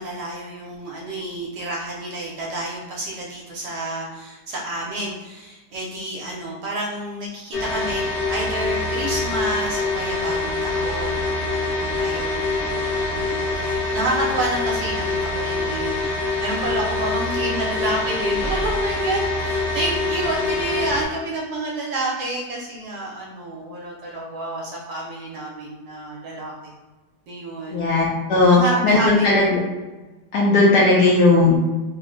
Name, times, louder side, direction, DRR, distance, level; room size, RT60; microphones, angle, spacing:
voice 1, 0.0-26.7 27.3-27.9 28.5-29.1 29.4-29.6 29.9-30.1, right 2 dB, 70° right, -3 dB, 1.1 m, -29 dB
sound 1, 7.5-21.0, left 3 dB, 55° left, 0.5 m, -25 dB
voice 2, 27.7-28.6 28.8-29.5 30.3-31.6, left 3 dB, 75° left, -4 dB, 0.9 m, -16 dB
3.3 x 2.1 x 3.6 m, 1.2 s
omnidirectional pair, 2.2 m